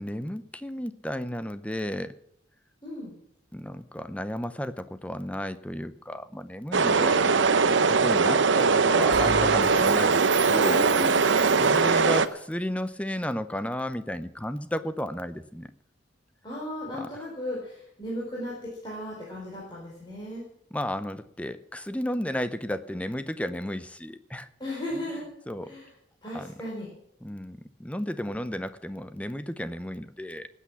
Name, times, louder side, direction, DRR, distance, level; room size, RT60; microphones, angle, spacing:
voice 1, 0.0-2.1 3.5-7.4 7.9-10.9 11.6-15.7 17.0-17.1 20.7-24.5 25.5-25.7 26.3-26.5 27.2-30.5, left 1 dB, 5° left, 12 dB, 0.6 m, -33 dB
voice 2, 2.8-3.1 7.0-7.7 8.2-8.4 10.7-11.6 16.4-20.5 24.6-25.2 25.6-25.9 26.2-26.9, left 1 dB, 25° left, -5 dB, 4.3 m, -36 dB
sound 1, 6.7-12.3, right 4 dB, 75° right, 0.7 m, -21 dB
Bell, 9.1-11.9, right 4 dB, 60° right, 2.2 m, -34 dB
19.0 x 8.5 x 7.1 m, 0.71 s
head